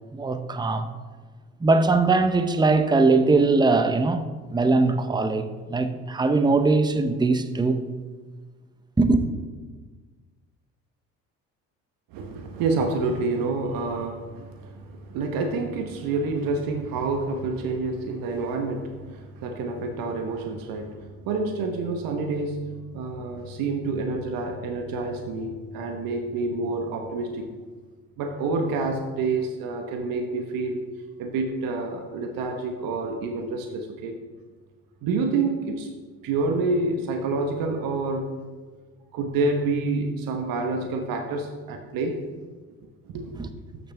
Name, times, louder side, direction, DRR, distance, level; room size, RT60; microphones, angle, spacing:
voice 1, 0.1-0.9 1.6-5.4 5.7-7.8 9.0-9.3 43.4-43.5, right 3 dB, 10° right, 0.7 m, -21 dB
voice 2, 12.1-27.5 28.2-30.8 31.2-34.2 35.0-35.9 36.2-38.3 39.1-42.2 43.1-43.5, right 3 dB, 70° right, 1.1 m, -28 dB
12.0 x 6.8 x 3.4 m
supercardioid pair, 70°, 36 cm